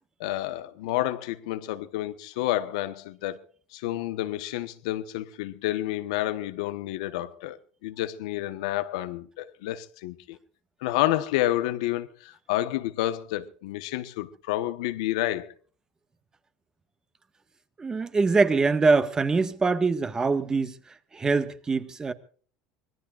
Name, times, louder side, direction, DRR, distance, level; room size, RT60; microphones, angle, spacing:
voice 1, 0.2-3.4 3.7-10.4 10.8-15.5, left 15 dB, 85° left, 1.2 m, -29 dB
voice 2, 17.8-20.7 21.1-22.1, right 4 dB, 20° right, 1.6 m, -23 dB
25.0 x 19.5 x 2.5 m
supercardioid pair, 105°, 3 cm